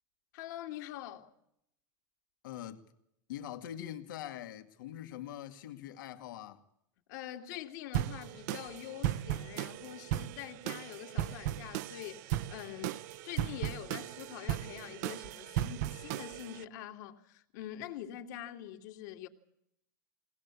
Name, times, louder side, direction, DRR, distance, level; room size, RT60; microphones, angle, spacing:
voice 1, 0.3-1.3 7.1-19.3, left 12 dB, 65° left, 2.6 m, -45 dB
voice 2, 2.4-2.8 3.3-6.6, left 11 dB, 85° left, 2.3 m, -43 dB
sound 1, 7.9-16.6, right 13 dB, 60° right, 0.8 m, -37 dB
22.5 x 19.0 x 8.4 m
supercardioid pair, 155°, 11 cm